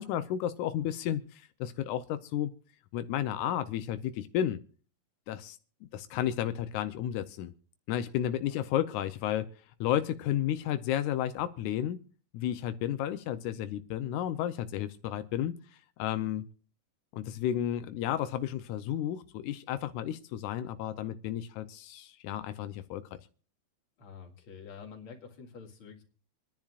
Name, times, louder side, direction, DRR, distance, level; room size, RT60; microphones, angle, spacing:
voice 1, 0.0-2.5 2.9-4.6 5.3-5.6 5.9-7.5 7.9-9.5 9.8-12.0 12.3-15.6 16.0-16.4 17.1-23.0, left 11 dB, 85° left, 10 dB, 2.2 m, -32 dB
voice 2, 24.0-26.0, left 6 dB, 50° left, 2 dB, 2.7 m, -48 dB
26.5 x 10.5 x 2.4 m, 0.39 s
omnidirectional pair, 3.4 m